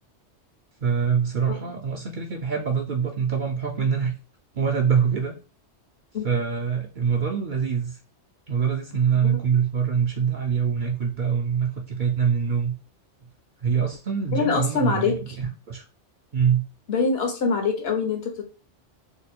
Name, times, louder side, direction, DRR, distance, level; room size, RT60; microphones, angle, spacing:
voice 1, 0.8-4.1 4.5-5.3 6.2-8.0 8.5-12.7 13.6-15.8 16.3-16.7, right 7 dB, 55° right, 1 dB, 0.6 m, -24 dB
voice 2, 14.3-15.1 16.9-18.4, left 4 dB, 65° left, 4 dB, 1.0 m, -24 dB
3.0 x 2.2 x 4.2 m, 0.34 s
omnidirectional pair, 1.2 m